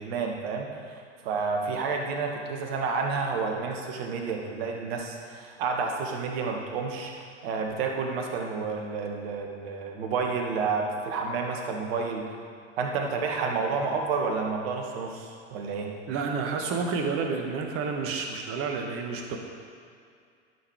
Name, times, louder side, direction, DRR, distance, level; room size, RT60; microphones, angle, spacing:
voice 1, 0.0-7.1 7.4-12.2 12.8-15.9, right 4 dB, 55° right, 2 dB, 1.6 m, -30 dB
voice 2, 16.1-19.4, right 5 dB, 40° right, 3 dB, 1.3 m, -30 dB
11.0 x 6.1 x 4.8 m, 2.3 s
figure-of-eight pair, 90°, 36 cm